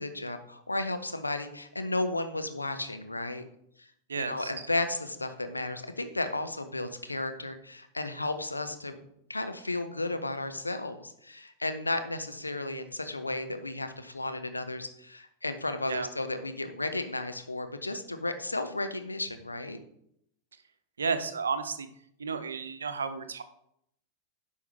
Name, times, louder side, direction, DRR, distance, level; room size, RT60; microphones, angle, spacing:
voice 1, 0.0-3.4 3.8-9.0 9.3-19.8, left 2 dB, 80° left, 8 dB, 0.8 m, -34 dB
voice 2, 4.1-4.5 15.9-16.1 21.0-21.9 22.2-23.4, right 5 dB, 70° right, 10 dB, 0.7 m, -32 dB
10.5 x 5.6 x 3.3 m, 0.73 s
figure-of-eight pair, 90°, 0 cm